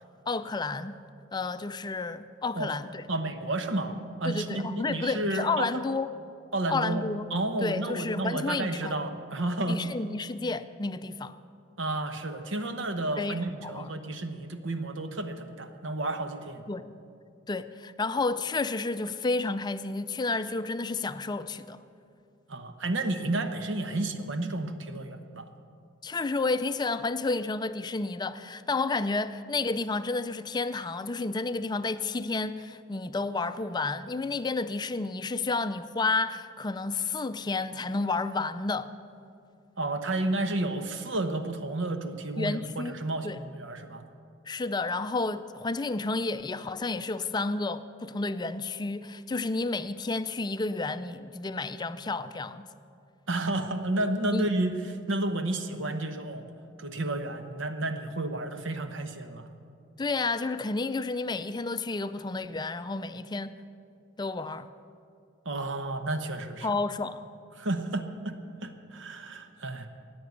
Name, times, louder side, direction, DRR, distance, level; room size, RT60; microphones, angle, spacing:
voice 1, 0.3-1.0 1.3-3.1 4.3-6.1 6.7-7.3 7.6-9.1 9.7-11.3 13.2-13.9 16.7-16.9 17.5-21.8 26.0-38.9 42.4-42.9 43.2-43.4 44.5-52.7 54.3-54.5 60.0-63.5 64.2-64.7 66.6-67.3, left 3 dB, 20° left, 0.4 m, -31 dB
voice 2, 3.1-5.7 6.5-9.8 11.8-16.7 22.5-25.5 39.8-44.0 53.3-56.4 56.8-59.5 65.4-66.7 67.6-69.9, right 2 dB, 70° right, 1.0 m, -31 dB
14.5 x 9.5 x 8.1 m
head